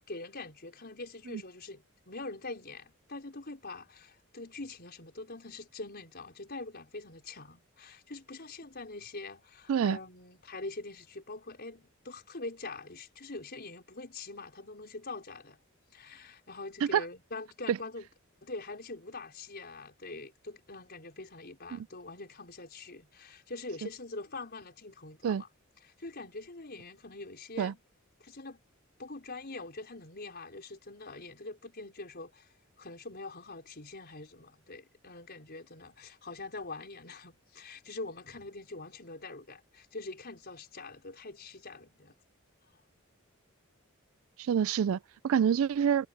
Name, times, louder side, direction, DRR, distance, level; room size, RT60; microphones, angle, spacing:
voice 1, 0.1-15.6 15.9-18.1 18.4-25.5 25.8-27.8 28.2-28.6 29.0-42.1, left 3 dB, 50° left, 5.1 m, -44 dB
voice 2, 44.4-46.1, right 8 dB, 75° right, 0.3 m, -27 dB
head